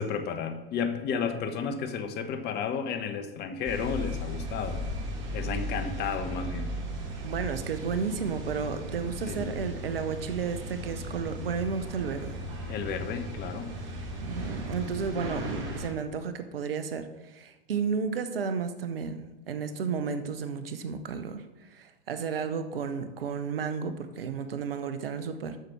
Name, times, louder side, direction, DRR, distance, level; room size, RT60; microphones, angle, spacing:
voice 1, 0.0-4.8 5.3-6.8 9.3-9.5 12.7-13.7 15.1-15.4, left 6 dB, 35° left, 8 dB, 1.1 m, -32 dB
sound 1, 3.6-15.9, equal, 40° right, 2.5 m, -36 dB
voice 2, 7.2-12.4 14.2-19.2 19.5-21.4 21.7-25.6, right 6 dB, 75° right, 9 dB, 1.0 m, -32 dB
7.7 x 6.7 x 6.1 m, 1.1 s
hypercardioid pair, 95°, 29 cm